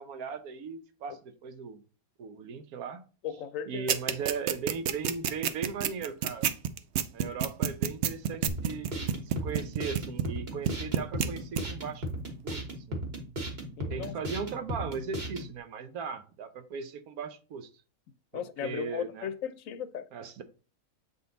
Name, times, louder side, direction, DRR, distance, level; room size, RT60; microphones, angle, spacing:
voice 1, 0.0-1.8 2.2-3.1 3.7-6.5 7.1-12.1 12.4-13.0 13.9-17.7 18.3-19.3 20.1-20.4, right 5 dB, 90° right, 1.3 m, -38 dB
voice 2, 3.2-3.9 13.8-14.2 18.3-20.1, left 8 dB, 70° left, 1.0 m, -36 dB
sound 1, 3.9-10.4 10.7-11.3 11.6-11.7, right 9 dB, 65° right, 0.7 m, -27 dB
sound 2, 8.5-15.5, right 1 dB, 45° right, 1.7 m, -36 dB
7.7 x 3.9 x 3.9 m
omnidirectional pair, 1.5 m